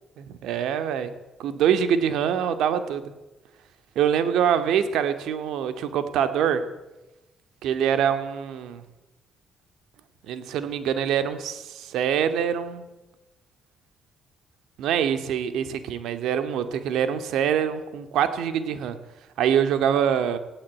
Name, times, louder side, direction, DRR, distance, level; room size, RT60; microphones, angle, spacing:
voice 1, 0.2-1.1 1.4-3.1 4.0-6.7 7.6-8.8 10.3-12.9 14.8-19.0 19.4-20.4, right 8 dB, 85° right, 10 dB, 2.3 m, -24 dB
19.5 x 16.5 x 8.6 m, 1.0 s
cardioid pair, 90°, 0 cm